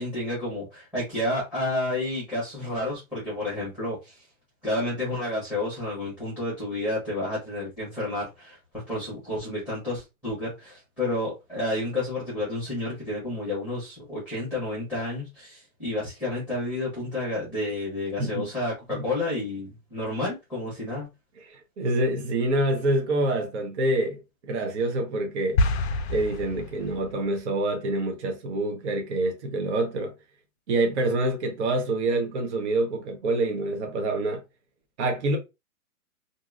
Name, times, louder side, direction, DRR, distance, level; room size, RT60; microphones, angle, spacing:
voice 1, 0.0-4.2 4.6-8.6 8.9-21.1, left 1 dB, 5° right, 1.2 m, -30 dB
voice 2, 18.2-18.5 18.9-19.1 21.4-25.6 26.1-30.1 30.7-34.4 35.0-35.4, right 2 dB, 50° right, 0.8 m, -26 dB
sound 1, 25.6-27.2, left 2 dB, 50° left, 0.4 m, -27 dB
2.8 x 2.6 x 2.4 m
hypercardioid pair, 155°, 43 cm